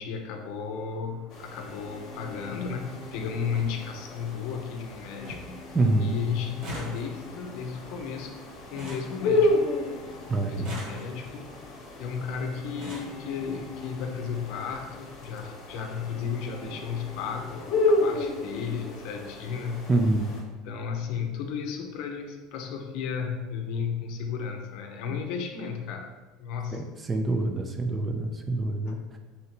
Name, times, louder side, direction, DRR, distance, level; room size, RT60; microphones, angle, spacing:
voice 1, 0.0-8.3 8.7-9.7 10.5-11.6 12.0-19.9 20.6-26.1 26.4-26.8 28.9-29.0, left 6 dB, 65° left, 4 dB, 0.6 m, -34 dB
sound 1, 0.7-18.6, left 1 dB, 5° left, 1.0 m, -48 dB
sound 2, 1.3-20.4, left 2 dB, 45° left, 1.0 m, -33 dB
sound 3, 3.5-3.7 4.2-4.7 4.9-5.0 5.2-5.6 5.9-9.9 10.5-11.4 12.2-12.3 12.6-13.2 14.1-14.2 14.6-14.8 15.0-15.2, right 1 dB, 55° right, 1.5 m, -43 dB
voice 2, 5.7-6.1 10.3-10.7 19.9-20.3 26.7-29.2, right 2 dB, 20° right, 5 dB, 0.4 m, -26 dB
3.9 x 2.6 x 4.3 m, 1.2 s
supercardioid pair, 140°, 0 cm